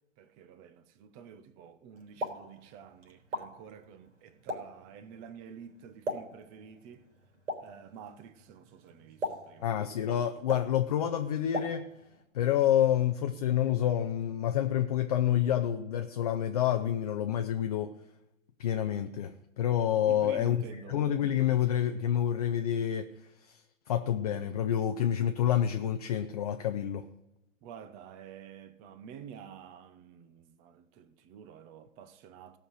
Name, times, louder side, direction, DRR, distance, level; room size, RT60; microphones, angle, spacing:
voice 1, 0.2-7.1 7.6-9.7 20.1-21.1 27.6-32.6, right 8 dB, 20° right, 0.7 m, -49 dB
Explosion, 2.0-12.2, left 1 dB, 65° right, 3.6 m, -42 dB
voice 2, 9.6-11.9 12.3-17.9 18.6-23.1 23.5-23.6 23.9-27.1, left 10 dB, 30° left, 0.5 m, -28 dB
17.0 x 5.9 x 6.4 m
figure-of-eight pair, 125°, 39 cm